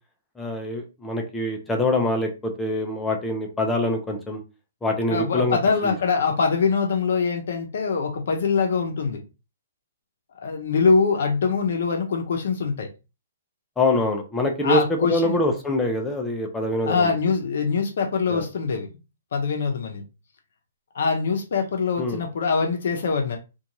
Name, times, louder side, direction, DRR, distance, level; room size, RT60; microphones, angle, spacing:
voice 1, 0.4-4.4 4.8-6.0 13.8-17.1 18.3-18.4 22.0-22.2, left 1 dB, 5° left, 0.3 m, -25 dB
voice 2, 5.1-9.2 10.4-12.9 14.6-15.4 16.8-18.9 19.3-20.0 20.9-23.4, left 5 dB, 60° left, 0.5 m, -23 dB
2.6 x 2.2 x 2.9 m
hypercardioid pair, 175°, 0 cm